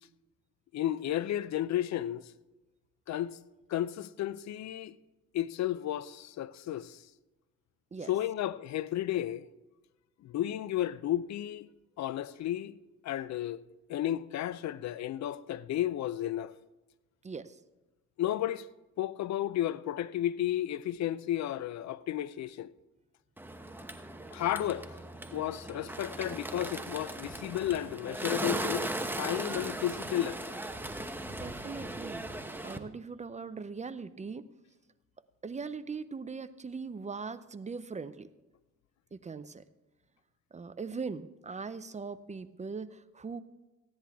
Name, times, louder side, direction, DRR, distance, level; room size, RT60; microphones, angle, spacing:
voice 1, 0.7-2.3 3.1-3.4 3.7-5.0 5.3-7.0 8.1-9.5 10.2-11.7 12.0-12.8 13.0-13.6 13.9-16.5 18.2-18.7 19.0-22.7 24.3-24.9 25.3-28.9 29.2-30.6, left 12 dB, 65° left, 0.5 m, -33 dB
voice 2, 17.2-17.6 31.3-34.5 35.4-38.3 39.1-39.6 40.5-43.4, right 5 dB, 25° right, 0.5 m, -40 dB
Bird, 23.4-32.8, right 1 dB, 5° right, 0.9 m, -38 dB
15.5 x 10.5 x 3.5 m
cardioid pair, 90°, 30 cm